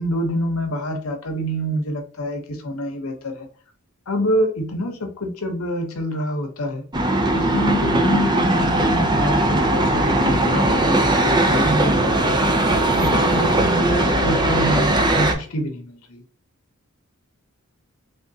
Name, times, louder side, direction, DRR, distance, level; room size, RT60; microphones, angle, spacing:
voice 1, 0.0-3.5 4.1-6.9 7.3-16.2, equal, 70° left, 4 dB, 0.9 m, -26 dB
sound 1, 6.9-15.3, right 1 dB, 20° right, 0.4 m, -19 dB
3.5 x 3.5 x 2.7 m, 0.43 s
head